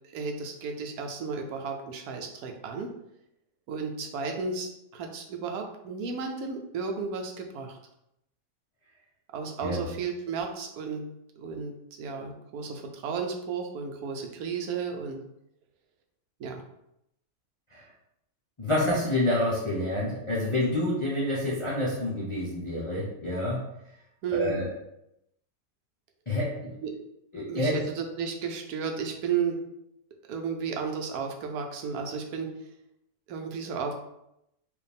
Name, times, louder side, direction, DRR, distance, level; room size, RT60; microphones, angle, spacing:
voice 1, 0.1-2.9 3.7-7.8 9.3-11.0 11.4-15.2 16.4-16.6 24.2-24.6 26.8-26.9 27.5-29.6 30.3-32.5 33.3-33.9, right 5 dB, 85° right, 3 dB, 1.1 m, -33 dB
voice 2, 18.6-23.6 24.3-24.7 26.3-26.7 27.3-27.8, left 1 dB, 35° left, -6 dB, 0.4 m, -28 dB
4.8 x 2.5 x 3.4 m, 0.81 s
omnidirectional pair, 1.6 m